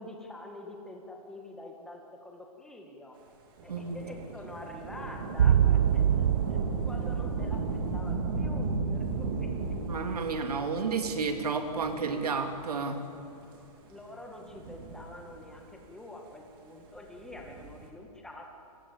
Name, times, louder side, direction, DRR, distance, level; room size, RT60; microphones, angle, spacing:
voice 1, 0.0-3.2 3.6-9.8 13.9-18.6, left 1 dB, 5° left, 1 dB, 1.8 m, -46 dB
Thunder / Rain, 3.6-12.5 13.3-13.4 14.3-15.6 17.1-17.9, right 3 dB, 35° right, 3.7 m, -35 dB
voice 2, 3.7-4.0 9.9-13.0, right 4 dB, 75° right, 5 dB, 3.4 m, -31 dB
sound 1, 5.4-9.6 9.9-10.0, right 9 dB, 60° right, 0.6 m, -27 dB
29.0 x 22.5 x 7.4 m, 2.9 s
hypercardioid pair, 170°, 20 cm